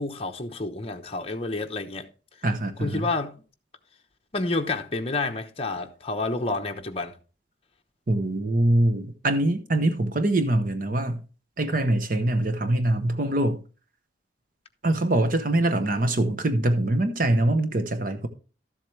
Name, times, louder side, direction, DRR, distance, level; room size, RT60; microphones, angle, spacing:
voice 1, 0.0-2.1 2.8-3.4 4.3-7.1, left 3 dB, 30° left, 1.0 m, -29 dB
voice 2, 2.4-3.1 8.1-11.2 11.6-13.6 14.8-18.3, right 1 dB, 45° right, 0.9 m, -23 dB
12.5 x 7.6 x 3.2 m
head